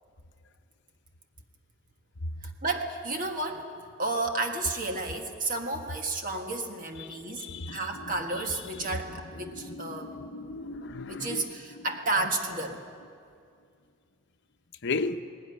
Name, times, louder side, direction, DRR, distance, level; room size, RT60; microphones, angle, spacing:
voice 1, 2.6-3.7 4.0-10.1 11.1-12.8, right 2 dB, 40° right, 1.5 m, -32 dB
voice 2, 7.0-8.1 8.7-9.0 9.4-11.8 14.8-15.2, left 3 dB, 55° left, 0.9 m, -36 dB
19.5 x 18.0 x 9.9 m
head